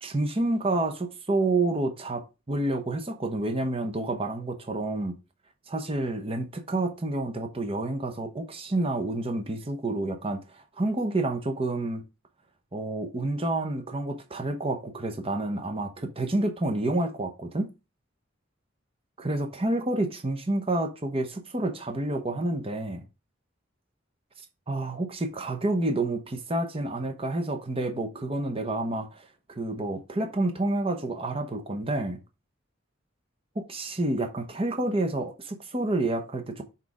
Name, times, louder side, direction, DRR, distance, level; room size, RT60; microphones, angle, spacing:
voice 1, 0.0-5.1 5.7-12.0 12.7-17.7 19.2-23.1 24.7-32.2 33.5-36.6, right 2 dB, 30° right, 0.9 m, -29 dB
6.3 x 4.3 x 4.8 m
head